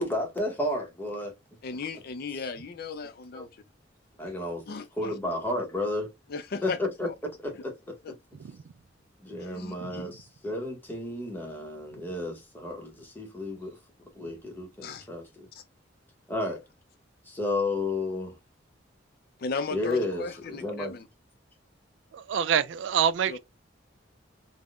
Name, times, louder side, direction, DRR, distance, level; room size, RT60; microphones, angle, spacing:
voice 1, 0.0-1.3 3.3-3.4 4.2-4.6 5.0-6.1 6.6-8.2 9.2-13.8 14.1-15.5 16.3-16.6 17.3-18.3 19.7-20.9, left 2 dB, 10° left, 0.8 m, -32 dB
voice 2, 1.6-3.6 4.7-5.2 6.3-7.1 8.0-8.1 9.4-10.0 14.8-15.1 15.5-15.6 19.4-21.1 23.3-23.4, left 4 dB, 55° left, 0.4 m, -36 dB
voice 3, 22.1-23.4, right 8 dB, 75° right, 0.3 m, -25 dB
3.5 x 2.1 x 2.3 m
head